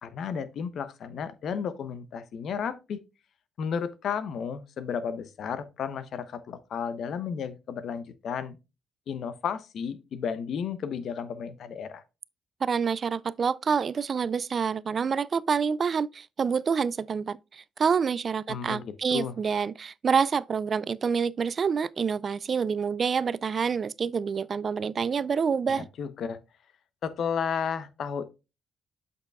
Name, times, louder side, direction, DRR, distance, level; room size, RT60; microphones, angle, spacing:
voice 1, 0.0-3.0 3.6-8.6 9.1-12.0 18.5-19.3 26.0-26.4 27.0-28.3, left 7 dB, 65° left, 0.9 m, -33 dB
voice 2, 12.6-25.9, right 6 dB, 45° right, 0.3 m, -27 dB
8.0 x 6.7 x 2.3 m
cardioid pair, 90°, 0 cm